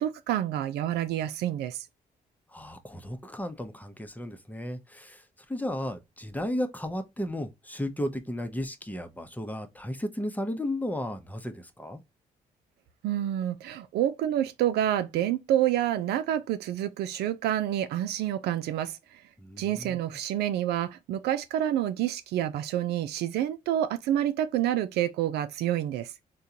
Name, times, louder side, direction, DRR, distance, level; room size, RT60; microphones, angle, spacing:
voice 1, 0.0-1.8 13.0-19.2 19.6-26.1, right 11 dB, 80° right, 0.4 m, -28 dB
voice 2, 2.5-12.0 19.4-20.0, left 1 dB, 10° left, 0.8 m, -34 dB
3.6 x 2.3 x 2.7 m
supercardioid pair, 55°, 17 cm